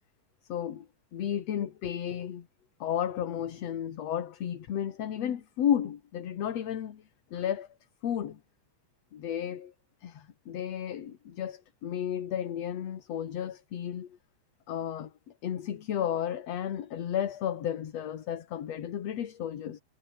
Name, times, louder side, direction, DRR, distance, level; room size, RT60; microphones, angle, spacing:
voice 1, 0.5-2.5 2.8-7.0 7.3-7.7 8.0-8.4 9.1-9.7 10.0-14.2 14.7-15.1 15.4-19.8, left 9 dB, 60° left, 2.8 m, -33 dB
omnidirectional pair, 3.5 m